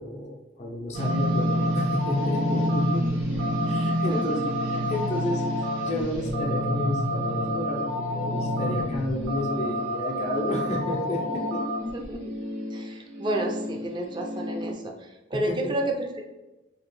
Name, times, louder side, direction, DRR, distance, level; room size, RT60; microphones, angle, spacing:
voice 1, 0.0-11.6 15.3-15.7, left 1 dB, 35° left, -1 dB, 0.5 m, -31 dB
sound 1, 0.9-14.7, equal, 90° right, 1.0 m, -28 dB
voice 2, 4.1-4.4 11.9-12.2 12.7-14.9 15.3-16.2, right 1 dB, 25° right, 2 dB, 0.4 m, -30 dB
2.9 x 2.7 x 3.0 m, 1.0 s
head